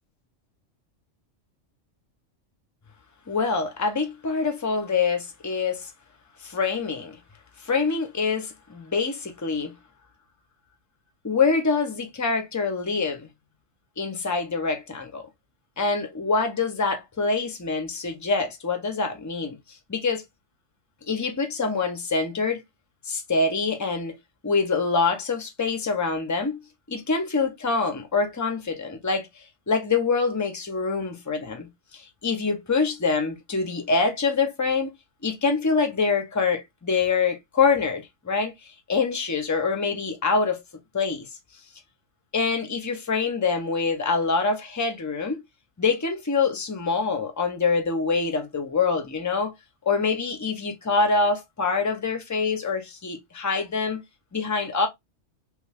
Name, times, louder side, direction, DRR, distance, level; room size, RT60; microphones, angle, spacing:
voice 1, 3.3-5.9 6.4-7.2 7.6-9.7 11.2-13.3 14.0-15.2 15.8-19.6 19.9-20.2 21.1-22.6 23.0-24.1 24.4-26.6 26.9-29.3 29.7-31.7 31.9-34.9 35.2-38.5 38.9-40.6 40.9-41.3 42.3-45.4 45.8-49.5 49.9-54.0 54.3-54.9, left 4 dB, 30° left, 0.3 m, -25 dB
3.1 x 2.2 x 3.3 m
omnidirectional pair, 1.3 m